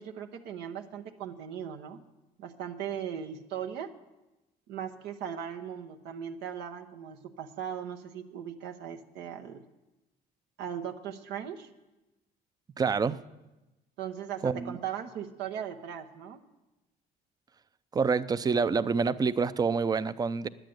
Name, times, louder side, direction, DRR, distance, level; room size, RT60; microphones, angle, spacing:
voice 1, 0.0-2.0 2.4-3.9 4.7-9.6 10.6-11.7 14.0-16.4, right 8 dB, 85° right, 4 dB, 0.9 m, -38 dB
voice 2, 12.8-13.2 14.4-14.8 17.9-20.5, right 5 dB, 25° right, 16 dB, 0.4 m, -27 dB
10.5 x 9.1 x 7.9 m, 1.0 s
cardioid pair, 110°, 17 cm